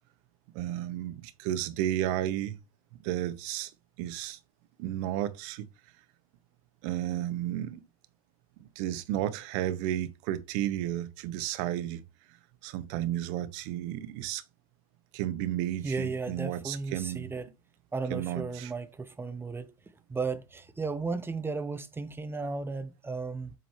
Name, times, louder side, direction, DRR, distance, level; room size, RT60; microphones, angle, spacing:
voice 1, 0.5-2.6 3.0-3.7 4.0-4.4 4.8-5.7 6.8-7.8 8.6-12.0 12.6-14.4 15.1-17.3 18.1-18.7, right 12 dB, 55° right, 1.0 m, -32 dB
voice 2, 15.8-17.5 17.9-19.7 20.1-23.5, right 4 dB, 10° right, 0.9 m, -34 dB
7.6 x 5.1 x 3.0 m
hypercardioid pair, 95°, 19 cm